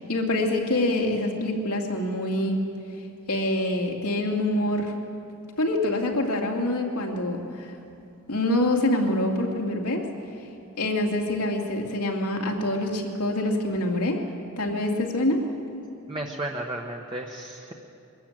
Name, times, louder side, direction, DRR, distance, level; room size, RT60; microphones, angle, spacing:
voice 1, 0.0-2.6 3.3-4.9 5.6-7.7 8.3-10.0 10.8-14.2 14.6-15.4, left 1 dB, 85° left, 0 dB, 2.6 m, -25 dB
voice 2, 16.1-17.7, right 1 dB, 20° right, 1 dB, 1.1 m, -33 dB
23.0 x 14.0 x 8.9 m, 2.7 s
head